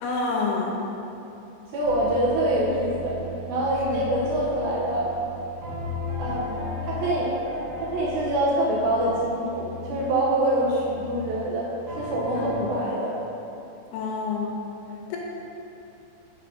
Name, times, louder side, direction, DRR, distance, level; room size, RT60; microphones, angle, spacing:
voice 1, 0.0-0.8 3.9-4.0 12.3-12.5 13.9-14.6 15.1-15.2, left 4 dB, 80° left, -1 dB, 2.6 m, -28 dB
voice 2, 1.7-3.2 3.5-5.1 6.2-7.3 7.8-11.7 12.0-13.2, right 1 dB, 70° right, -5 dB, 2.5 m, -25 dB
sound 1, 1.8-12.5, left 1 dB, 55° right, 2.9 m, -36 dB
6.2 x 4.8 x 5.1 m, 2.8 s
omnidirectional pair, 4.9 m